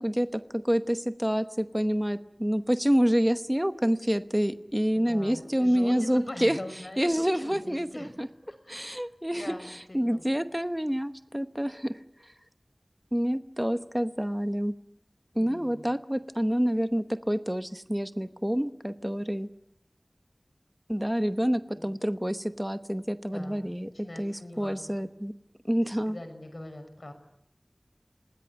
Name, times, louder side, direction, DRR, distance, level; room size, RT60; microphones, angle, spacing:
voice 1, 0.0-6.6 7.0-8.3 8.7-12.3 13.1-14.7 15.3-19.5 20.9-23.9 24.2-25.3 25.6-26.2, equal, 10° right, 10 dB, 0.9 m, -28 dB
voice 2, 4.9-8.1 8.5-9.1 9.3-10.2 15.3-15.9 21.7-21.9 23.3-23.6 24.0-25.1 26.1-27.1, left 1 dB, 70° left, 7 dB, 6.0 m, -42 dB
27.5 x 19.5 x 9.4 m, 0.82 s
wide cardioid pair, 40°, 0 cm